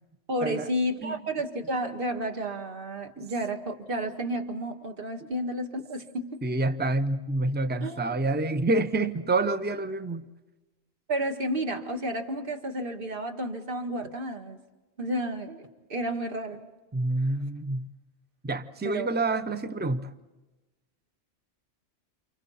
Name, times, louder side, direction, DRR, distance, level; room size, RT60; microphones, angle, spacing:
voice 1, 0.3-6.4 7.8-8.0 11.1-14.6 15.0-15.6 15.9-16.7 18.8-19.1, right 1 dB, 45° right, 2.0 m, -31 dB
voice 2, 6.4-10.3 16.9-17.9 18.4-20.1, right 2 dB, 10° right, 0.7 m, -27 dB
29.5 x 29.0 x 4.3 m
omnidirectional pair, 1.3 m